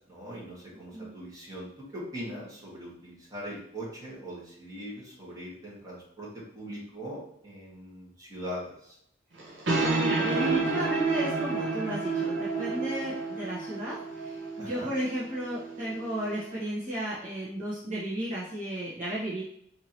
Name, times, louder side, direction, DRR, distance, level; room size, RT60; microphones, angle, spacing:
voice 1, 0.1-9.0 14.6-14.9, equal, 20° right, -7 dB, 1.6 m, -41 dB
sound 1, 9.4-16.5, right 4 dB, 65° right, 0.9 m, -30 dB
voice 2, 9.8-19.4, equal, 40° right, -8 dB, 1.2 m, -34 dB
4.6 x 2.8 x 2.9 m, 0.71 s
head